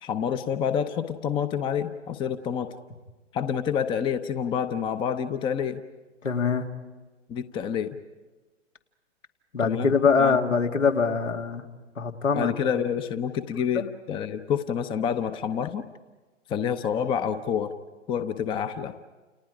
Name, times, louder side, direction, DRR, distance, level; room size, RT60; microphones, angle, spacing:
voice 1, 0.0-2.7 3.3-5.8 7.3-8.0 9.6-9.9 10.2-10.4 12.3-15.8 16.5-17.7 18.1-18.9, left 8 dB, 15° left, 11 dB, 0.7 m, -28 dB
voice 2, 6.2-6.7 9.5-11.7 12.0-12.5 13.7-13.9, left 5 dB, 80° left, 3 dB, 2.5 m, -23 dB
29.5 x 29.0 x 5.0 m, 1.2 s
figure-of-eight pair, 120°, 37 cm